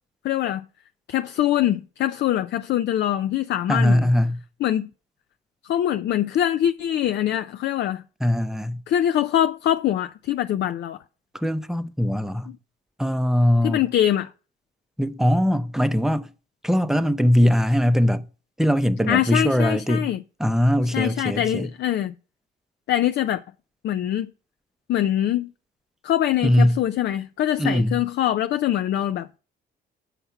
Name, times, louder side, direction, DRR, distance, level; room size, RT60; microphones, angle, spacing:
voice 1, 0.2-0.6 1.1-4.1 4.6-4.9 5.6-8.0 8.9-11.0 12.5-12.6 13.6-14.3 19.1-20.2 20.9-22.1 22.9-23.4 23.8-24.3 24.9-25.5 26.0-29.4, left 11 dB, 65° left, 0.4 m, -23 dB
voice 2, 3.7-4.4 8.2-8.8 11.3-12.5 13.0-13.8 15.0-16.3 16.6-18.2 18.6-20.1 20.4-21.7 26.4-26.8 27.6-28.0, equal, ahead, 0.6 m, -21 dB
6.9 x 5.8 x 5.7 m
cardioid pair, 90°, 20 cm